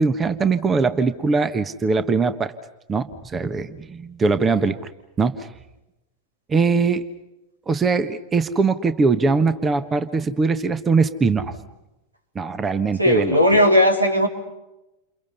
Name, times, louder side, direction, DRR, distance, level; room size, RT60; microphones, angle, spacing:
voice 1, 0.0-2.5 2.9-4.9 5.2-5.5 6.5-7.0 7.7-11.5 12.3-13.6, right 4 dB, 20° right, 12 dB, 1.4 m, -21 dB
voice 2, 13.0-14.3, equal, 85° right, 5 dB, 3.7 m, -16 dB
30.0 x 29.0 x 5.6 m, 0.96 s
figure-of-eight pair, 90°, 0 cm